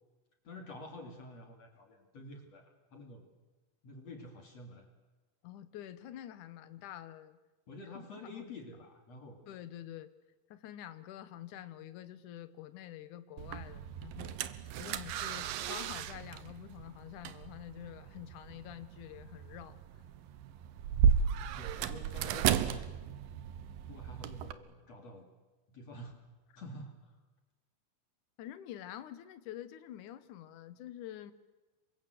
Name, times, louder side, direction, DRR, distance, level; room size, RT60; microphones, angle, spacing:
voice 1, 0.4-3.2 3.8-4.9 7.7-9.5 21.5-22.9 23.8-25.3 25.7-26.1 26.6-27.1, left 1 dB, 45° left, 4 dB, 3.3 m, -49 dB
voice 2, 5.4-7.4 7.8-8.5 9.5-10.1 10.5-14.4 14.8-19.8 24.2-24.4 28.4-31.3, left 12 dB, 65° left, 12 dB, 2.1 m, -47 dB
sound 1, 13.4-24.5, right 8 dB, 70° right, 2.5 m, -34 dB
27.5 x 24.0 x 7.8 m, 1.2 s
omnidirectional pair, 4.8 m